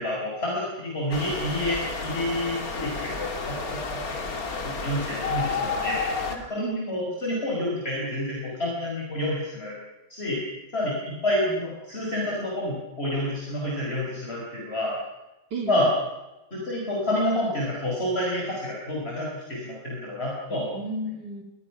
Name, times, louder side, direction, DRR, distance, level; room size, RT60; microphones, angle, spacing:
voice 1, 0.0-3.8 4.2-4.3 4.5-6.0 6.3-9.7 10.1-10.4 10.7-14.9 15.7-15.9 16.5-20.7, left 1 dB, 35° left, -4 dB, 5.6 m, -29 dB
sound 1, 1.1-6.4, left 4 dB, 60° left, 2.7 m, -31 dB
voice 2, 6.6-7.2 11.4-11.6 15.5-15.9 20.5-21.4, right 2 dB, 85° right, 4 dB, 3.0 m, -33 dB
25.5 x 21.0 x 6.1 m, 1.0 s
omnidirectional pair, 1.8 m